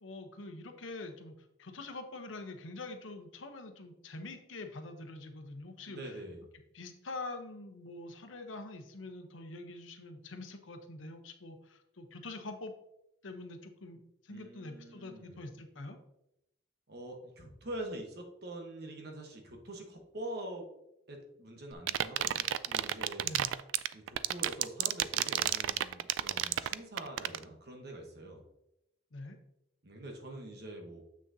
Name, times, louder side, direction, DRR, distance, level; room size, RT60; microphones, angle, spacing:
voice 1, 0.0-6.1 6.7-12.7 13.2-16.0 23.2-23.5 29.1-29.4, left 2 dB, 85° left, 6 dB, 0.8 m, -45 dB
voice 2, 5.8-6.4 14.3-15.4 16.9-20.6 21.1-23.3 23.9-28.4 29.8-31.0, right 1 dB, 55° right, 2 dB, 1.2 m, -45 dB
sound 1, 21.7-27.4, right 12 dB, 80° right, 0.3 m, -30 dB
7.5 x 6.2 x 2.7 m, 0.84 s
head